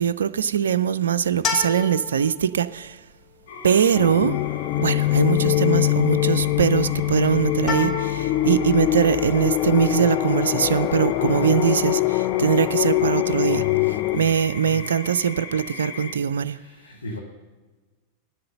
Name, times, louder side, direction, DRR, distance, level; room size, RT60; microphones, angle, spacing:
voice 1, 0.0-3.0 3.6-4.4 4.8-16.6, right 8 dB, 65° right, 0.3 m, -22 dB
sound 1, 1.3-14.1, left 5 dB, 25° left, 1.3 m, -35 dB
sound 2, 3.5-16.1, left 5 dB, 55° left, 1.6 m, -39 dB
sound 3, 3.9-14.2, left 16 dB, 40° left, 0.3 m, -23 dB
voice 2, 14.1-14.8 16.5-17.2, left 1 dB, 75° left, 1.4 m, -37 dB
11.0 x 7.7 x 6.6 m
figure-of-eight pair, 90°, 0 cm